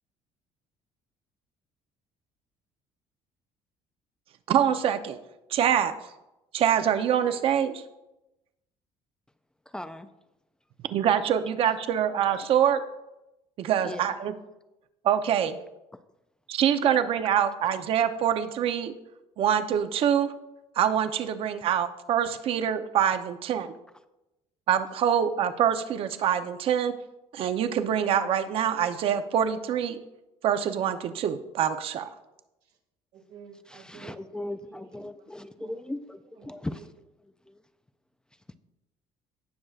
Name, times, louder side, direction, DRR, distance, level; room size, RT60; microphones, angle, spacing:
voice 1, 4.5-5.2 5.5-5.9 6.5-7.8 10.8-12.8 13.6-14.3 15.0-15.6 16.5-18.9 19.4-20.3 20.8-23.7 24.7-27.0 27.3-30.0 30.4-32.1, right 9 dB, 55° right, 10 dB, 0.7 m, -25 dB
voice 2, 9.7-10.1 13.8-14.1 15.9-16.0 33.7-36.9 37.2-37.6, left 1 dB, 5° left, 10 dB, 0.3 m, -38 dB
voice 3, 33.1-35.3 35.6-35.8 36.3-36.8, right 6 dB, 80° right, -1 dB, 1.9 m, -50 dB
17.5 x 6.4 x 2.4 m, 0.96 s
cardioid pair, 145°, 12 cm